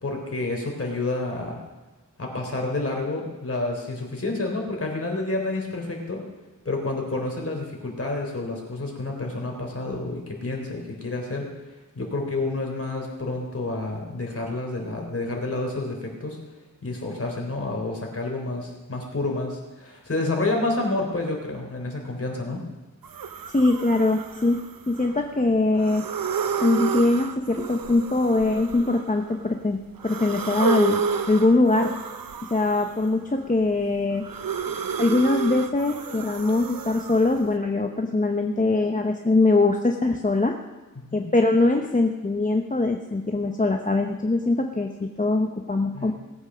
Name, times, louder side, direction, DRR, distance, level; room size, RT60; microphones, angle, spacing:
voice 1, 0.0-1.6 2.2-6.2 6.7-11.5 11.9-16.4 16.8-22.6 41.1-41.2 45.9-46.1, left 2 dB, 45° left, 0 dB, 3.6 m, -29 dB
sound 1, 23.0-25.3 25.8-29.5 30.0-33.2 33.6-37.5, right 6 dB, 85° right, 0.8 m, -31 dB
voice 2, 23.5-24.6 24.9-26.1 26.6-31.9 32.5-34.3 35.0-40.6 41.1-46.1, left 2 dB, 25° left, 3 dB, 0.8 m, -22 dB
18.0 x 8.2 x 6.2 m, 1.2 s
wide cardioid pair, 100°, 34 cm